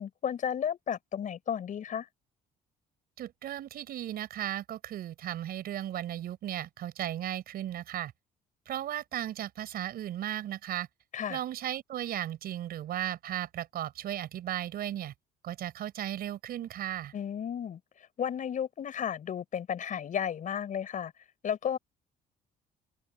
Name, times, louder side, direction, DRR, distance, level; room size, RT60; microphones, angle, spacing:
voice 1, 0.0-2.1 11.1-11.4 17.1-17.8 18.2-21.1 21.4-21.8, left 8 dB, 50° left, 6.9 m, -33 dB
voice 2, 3.2-8.1 8.7-10.9 11.3-15.1 15.4-17.1, right 12 dB, 65° right, 5.0 m, -35 dB
cardioid pair, 110°, 17 cm